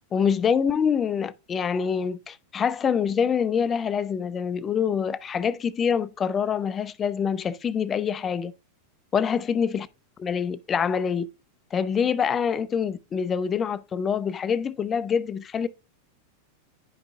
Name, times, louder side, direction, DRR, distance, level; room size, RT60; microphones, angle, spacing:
voice 1, 0.1-8.5 9.1-9.9 10.2-11.3 11.7-15.7, left 7 dB, 25° left, 0.4 m, -25 dB
10.5 x 5.1 x 2.4 m
figure-of-eight pair, 90°, 0 cm